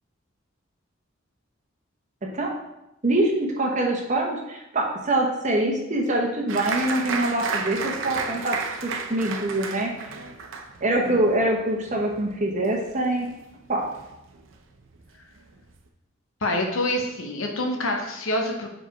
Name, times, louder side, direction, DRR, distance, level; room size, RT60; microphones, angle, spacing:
voice 1, 3.0-8.6 8.8-10.1 10.8-13.3 13.7-13.9, right 1 dB, 35° right, 0 dB, 1.0 m, -24 dB
Applause, 6.5-13.6 13.8-14.6 15.0-15.1 15.4-15.8, right 5 dB, 70° right, 0.6 m, -32 dB
voice 2, 16.4-18.7, left 1 dB, 75° left, 2 dB, 0.9 m, -26 dB
4.8 x 4.4 x 4.6 m, 0.91 s
head